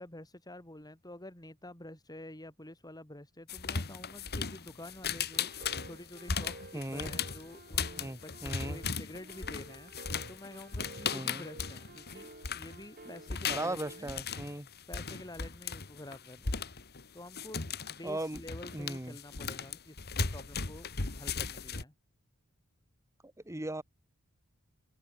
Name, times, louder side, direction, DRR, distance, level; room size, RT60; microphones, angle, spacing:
voice 1, 0.0-14.1 14.9-16.7 17.1-20.9 21.1-21.9, left 1 dB, 15° left, 4.0 m, -49 dB
sound 1, 3.5-12.8 13.2-21.8, left 5 dB, 45° left, 1.7 m, -37 dB
sound 2, 5.3-14.1, right 2 dB, 45° right, 5.0 m, -52 dB
voice 2, 6.7-7.1 8.0-8.8 11.1-11.4 13.5-14.7 18.0-18.4 18.7-19.2 23.5-23.8, right 1 dB, 15° right, 1.3 m, -37 dB
open air
head